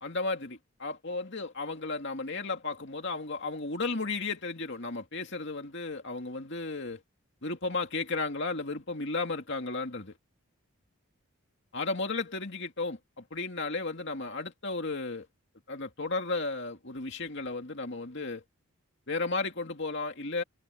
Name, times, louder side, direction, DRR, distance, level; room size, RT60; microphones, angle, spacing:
voice 1, 0.0-7.0 7.4-10.1 11.7-15.3 15.7-18.4 19.1-20.4, left 3 dB, 50° left, 2.5 m, -34 dB
head